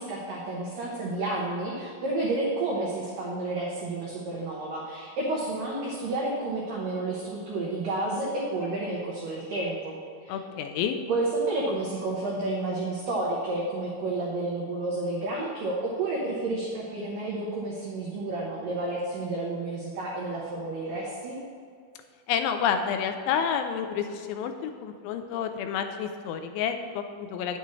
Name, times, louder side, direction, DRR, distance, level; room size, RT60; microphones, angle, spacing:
voice 1, 0.0-10.4 11.1-21.4, right 2 dB, 85° right, -4 dB, 1.9 m, -30 dB
voice 2, 10.3-11.0 22.3-27.6, left 7 dB, 85° left, 6 dB, 2.8 m, -29 dB
9.5 x 8.9 x 3.2 m, 2.2 s
omnidirectional pair, 5.6 m